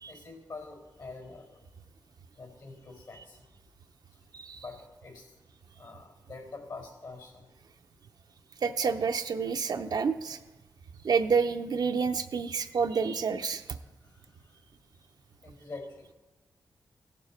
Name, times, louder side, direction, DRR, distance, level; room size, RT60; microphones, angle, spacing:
voice 1, 0.1-1.5 2.4-3.4 4.6-5.3 5.8-7.5 13.8-14.3 15.4-16.0, left 3 dB, 65° left, 1 dB, 4.2 m, -45 dB
voice 2, 8.6-10.4 11.0-13.6, right 5 dB, 70° right, 6 dB, 0.5 m, -28 dB
16.0 x 7.0 x 4.3 m, 1.1 s
cardioid pair, 60°, 7 cm